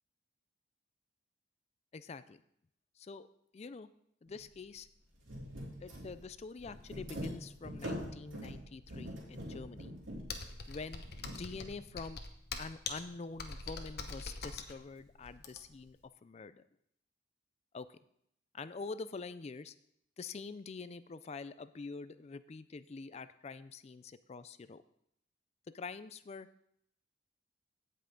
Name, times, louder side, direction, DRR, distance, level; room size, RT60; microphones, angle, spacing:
voice 1, 1.9-2.4 3.0-3.3 3.5-3.9 4.2-4.9 5.8-10.0 10.7-12.2 12.6-16.6 17.7-18.0 18.5-19.7 20.2-24.8 25.7-26.5, left 4 dB, 35° left, 14 dB, 0.4 m, -46 dB
sound 1, 4.3-4.5 4.7-4.8 5.2-11.9, equal, 85° right, 2.9 m, -44 dB
Computer keyboard, 10.3-15.9, left 4 dB, 55° left, 0.9 m, -43 dB
16.0 x 5.6 x 3.8 m, 0.72 s
head